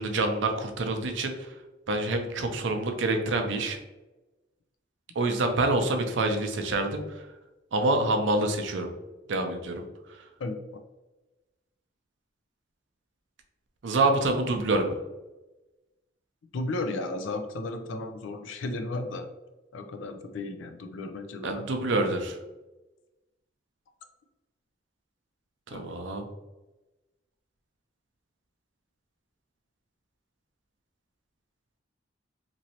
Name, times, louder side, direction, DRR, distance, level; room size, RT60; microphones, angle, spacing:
voice 1, 0.0-1.5 1.9-3.8 5.2-7.0 7.7-8.9 9.3-9.8 13.8-14.9 21.4-22.4 25.7-26.2, right 2 dB, 75° right, 5 dB, 0.5 m, -26 dB
voice 2, 16.5-19.3 19.7-21.6 25.7-25.9, left 2 dB, 90° left, 7 dB, 0.4 m, -34 dB
3.0 x 2.6 x 2.8 m, 1.1 s
head